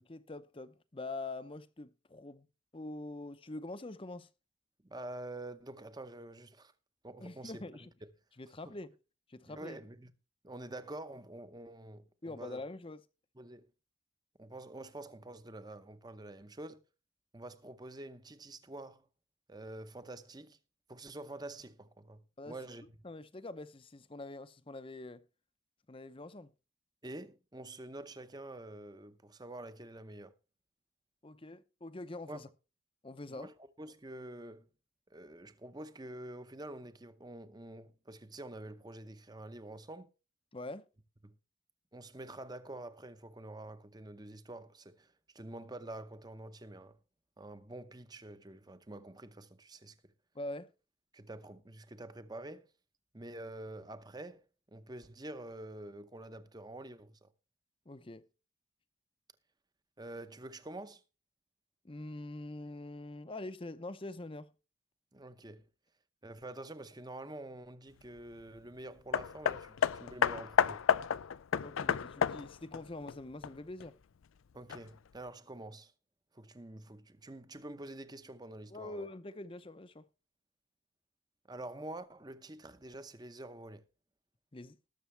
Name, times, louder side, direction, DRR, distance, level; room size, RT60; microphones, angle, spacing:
voice 1, 0.1-2.5 2.7-4.3 7.2-7.9 8.4-8.9 9.3-9.8 12.2-13.0 22.4-22.6 23.0-25.2 25.9-26.5 31.2-32.5 33.0-33.5 40.5-40.8 50.3-50.7 57.9-58.2 61.8-64.5 71.6-73.9 78.7-80.1 84.5-84.8, left 2 dB, 25° left, 0.6 m, -44 dB
voice 2, 4.8-6.7 7.0-7.6 9.4-10.1 10.4-12.6 13.4-13.7 14.4-16.8 17.3-19.1 19.5-20.6 20.9-22.9 27.0-30.3 32.3-32.4 33.3-34.7 35.1-40.1 41.2-41.3 41.9-47.0 47.4-49.9 51.1-52.7 53.1-57.3 60.0-61.0 65.1-65.7 66.2-70.8 74.5-75.9 76.3-79.1 81.5-83.8, right 1 dB, 20° right, 0.8 m, -47 dB
Hammer, 69.1-73.9 74.7-74.8, left 7 dB, 80° left, 0.4 m, -31 dB
20.0 x 6.7 x 3.3 m
head